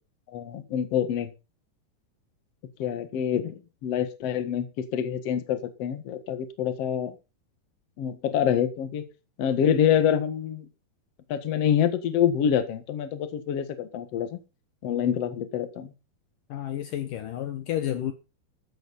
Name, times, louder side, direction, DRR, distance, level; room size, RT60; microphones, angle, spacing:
voice 1, 0.3-1.3 2.8-4.7 4.9-7.1 8.0-9.1 9.4-10.7 11.3-14.4 14.8-15.9, left 9 dB, 50° left, 2.1 m, -26 dB
voice 2, 16.5-18.1, left 11 dB, 70° left, 2.4 m, -30 dB
14.0 x 11.5 x 4.1 m
omnidirectional pair, 4.5 m